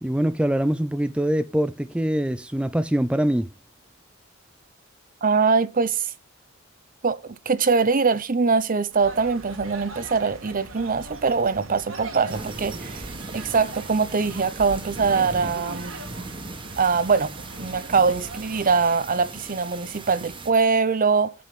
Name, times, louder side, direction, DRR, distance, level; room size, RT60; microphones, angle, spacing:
voice 1, 0.0-3.5, right 1 dB, 5° right, 0.4 m, -23 dB
voice 2, 5.2-6.1 7.0-13.1 13.3-15.9 16.8-17.3 17.6-21.3, right 5 dB, 45° right, 0.8 m, -22 dB
sound 1, 8.9-18.8, right 2 dB, 70° right, 1.9 m, -40 dB
sound 2, 12.3-20.5, right 2 dB, 25° right, 1.4 m, -38 dB
8.5 x 5.6 x 7.4 m
head